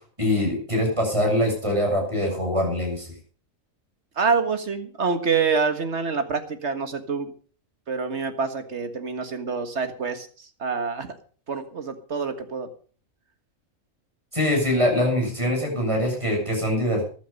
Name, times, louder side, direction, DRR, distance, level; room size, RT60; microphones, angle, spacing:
voice 1, 0.2-3.1 14.3-17.1, left 1 dB, 20° right, 0 dB, 7.2 m, -23 dB
voice 2, 4.2-7.3 7.9-11.2 11.5-12.7, right 5 dB, 55° right, 8 dB, 1.9 m, -26 dB
15.0 x 11.5 x 5.4 m, 0.42 s
omnidirectional pair, 1.4 m